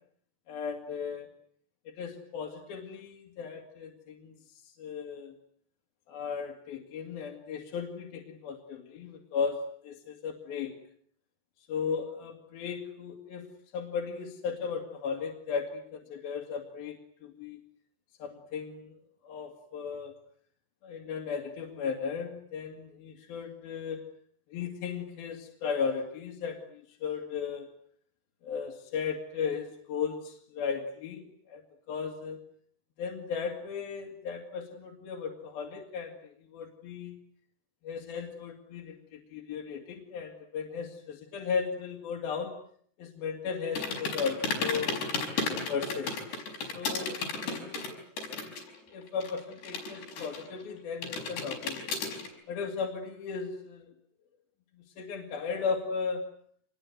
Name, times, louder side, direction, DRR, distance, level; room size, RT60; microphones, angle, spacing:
voice 1, 0.5-1.3 2.0-5.4 6.1-10.7 11.6-13.5 13.7-17.6 18.2-19.0 19.2-20.1 20.8-24.0 24.5-27.7 28.4-31.6 31.9-32.4 33.0-37.2 37.8-42.5 43.0-45.0 45.7-47.8 48.4-48.5 48.9-52.0 52.5-53.9 54.8-56.3, left 6 dB, 65° left, 0 dB, 4.1 m, -36 dB
sound 1, 43.8-48.8 49.0-50.6 51.0-52.3, left 4 dB, 85° left, 7.5 m, -33 dB
27.0 x 21.5 x 9.6 m, 0.65 s
omnidirectional pair, 4.7 m